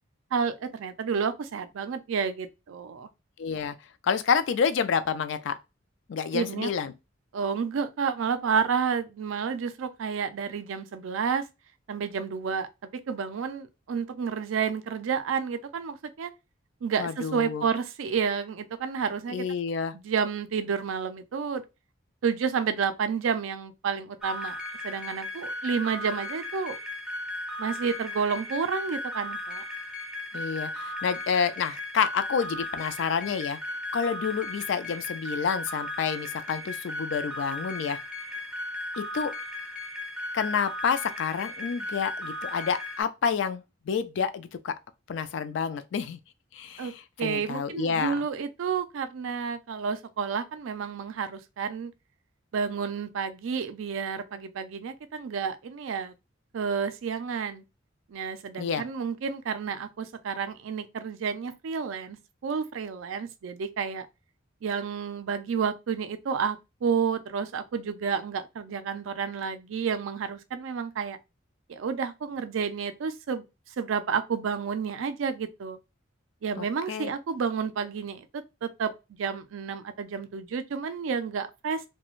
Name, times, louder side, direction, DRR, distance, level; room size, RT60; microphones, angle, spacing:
voice 1, 0.3-3.1 6.3-6.7 7.3-11.4 11.9-12.7 13.1-16.3 16.8-19.4 20.0-21.6 22.2-24.5 24.8-26.8 27.6-29.7 46.8-46.9 47.2-51.9 52.5-56.1 56.5-57.6 58.1-62.2 62.4-64.1 64.6-71.2 71.7-73.4 73.8-75.8 76.4-78.9 79.2-81.9, right 6 dB, 80° right, 0.4 m, -30 dB
voice 2, 3.4-3.8 4.0-5.6 6.1-6.9 17.0-17.6 19.3-19.9 30.3-33.6 33.9-38.0 39.0-39.3 40.3-44.7 45.1-46.2 46.5-48.2 58.6-58.8 76.6-77.1, left 6 dB, 65° left, 0.3 m, -29 dB
sound 1, 24.2-43.0, left 1 dB, 5° right, 0.5 m, -36 dB
2.4 x 2.2 x 3.0 m
head